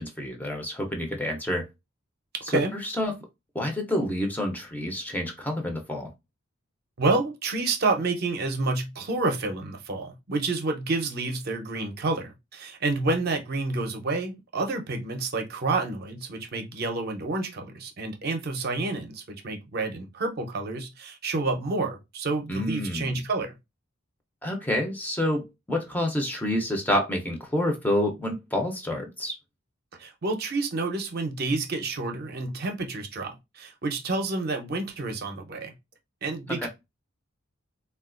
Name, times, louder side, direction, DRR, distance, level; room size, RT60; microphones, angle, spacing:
voice 1, 0.0-1.7 2.4-3.1 3.5-6.1 22.5-23.1 24.4-29.4 36.6-36.7, left 1 dB, 10° left, 0.5 m, -28 dB
voice 2, 7.0-23.5 30.0-35.7 36.2-36.7, right 3 dB, 50° right, 0.5 m, -29 dB
3.6 x 2.2 x 2.4 m
head